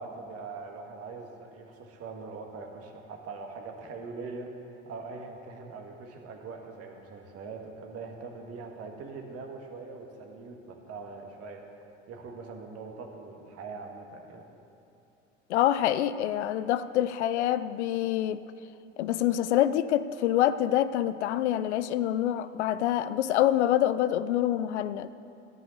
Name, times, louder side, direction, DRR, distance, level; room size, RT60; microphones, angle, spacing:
voice 1, 0.0-11.8 12.1-14.4, right 4 dB, 40° right, 1.7 m, -42 dB
voice 2, 15.5-18.4 19.0-25.1, left 12 dB, 65° left, 0.5 m, -26 dB
14.0 x 5.8 x 8.3 m
figure-of-eight pair, 70°, 37 cm